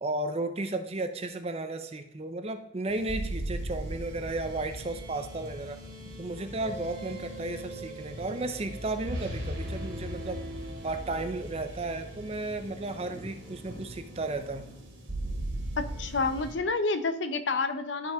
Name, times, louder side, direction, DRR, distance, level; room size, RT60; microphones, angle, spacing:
voice 1, 0.0-5.8 6.2-10.4 10.8-14.7, right 2 dB, 35° right, 8 dB, 0.6 m, -34 dB
sound 1, 2.9-16.5, right 1 dB, 85° right, 2.2 m, -38 dB
voice 2, 15.8-18.1, left 3 dB, 80° left, 10 dB, 0.7 m, -29 dB
13.0 x 4.6 x 3.6 m, 0.82 s
head